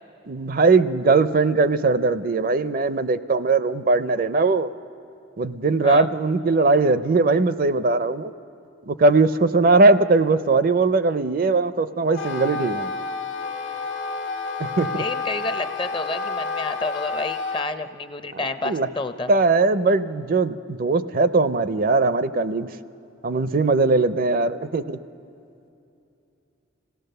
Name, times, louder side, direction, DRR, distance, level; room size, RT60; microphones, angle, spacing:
voice 1, 0.3-4.7 5.4-8.3 8.9-12.9 14.6-15.0 18.3-18.9 19.3-22.7 23.2-25.0, right 3 dB, 45° right, 13 dB, 0.5 m, -20 dB
Wind instrument woodwind instrument, 12.0-17.7, left 4 dB, 70° left, 1.6 m, -30 dB
voice 2, 15.0-19.3, left 3 dB, 25° left, 10 dB, 0.5 m, -29 dB
26.5 x 17.0 x 6.7 m, 2.7 s
head